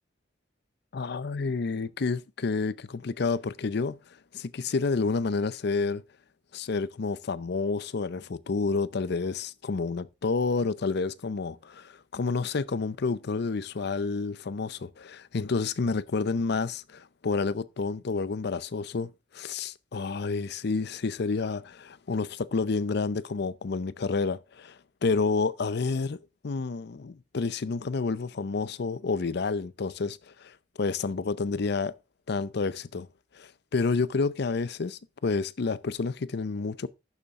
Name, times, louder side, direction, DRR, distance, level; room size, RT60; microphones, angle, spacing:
voice 1, 0.9-4.0 4.3-6.0 6.5-26.2 26.4-31.9 32.3-33.1 33.3-36.9, left 4 dB, 60° left, 0.6 m, -29 dB
11.0 x 7.0 x 3.6 m
head